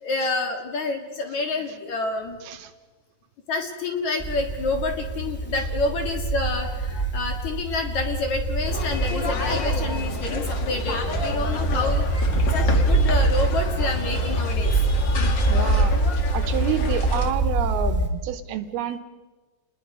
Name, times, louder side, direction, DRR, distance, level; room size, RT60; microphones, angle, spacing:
voice 1, 0.0-2.4 3.5-12.1 12.5-14.7, left 3 dB, 55° left, 3 dB, 2.5 m, -28 dB
voice 2, 2.4-2.7 15.5-15.9 16.3-19.0, right 10 dB, 75° right, 8 dB, 2.5 m, -28 dB
sound 1, 4.2-18.1, right 2 dB, 5° left, 1.4 m, -24 dB
sound 2, 8.7-17.3, left 4 dB, 75° left, 1.0 m, -32 dB
30.0 x 20.5 x 5.5 m, 1.3 s
omnidirectional pair, 4.9 m